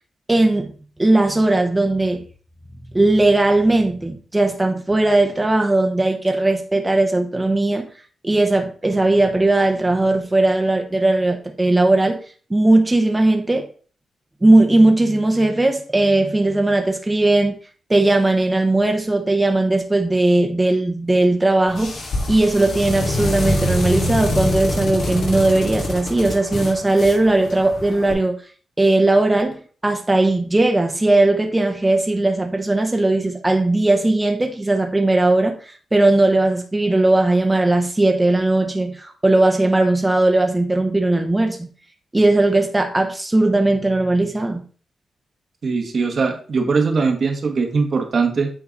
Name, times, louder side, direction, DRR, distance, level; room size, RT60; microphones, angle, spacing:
voice 1, 0.3-0.7 1.0-2.2 2.9-7.9 8.2-12.2 12.5-13.7 14.4-17.6 17.9-22.0 22.3-28.4 28.8-41.7 42.1-44.6, right 2 dB, 15° right, 0.9 m, -18 dB
sound 1, 21.7-28.1, left 1 dB, 75° left, 2.6 m, -25 dB
voice 2, 45.6-48.5, right 4 dB, 55° right, 1.3 m, -20 dB
8.8 x 3.9 x 3.9 m
cardioid pair, 90°, 0 cm